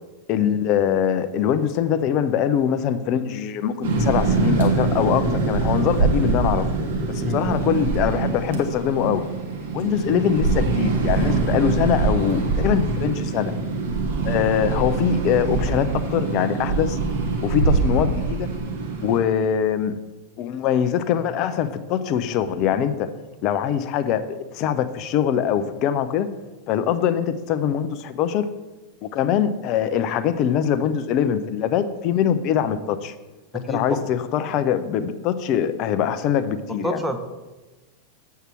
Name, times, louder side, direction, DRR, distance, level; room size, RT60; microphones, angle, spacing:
voice 1, 0.3-6.6 7.1-9.2 9.7-13.5 14.2-17.0 17.4-18.5 19.0-19.9 20.4-23.1 23.4-26.3 26.7-28.5 29.0-33.1 33.5-37.0, left 9 dB, 40° left, 11 dB, 0.6 m, -23 dB
sound 1, 3.8-19.2, right 4 dB, 60° right, 1.6 m, -23 dB
voice 2, 36.8-37.2, equal, 5° right, 5 dB, 0.9 m, -28 dB
8.1 x 4.6 x 5.8 m, 1.2 s
figure-of-eight pair, 90°, 0 cm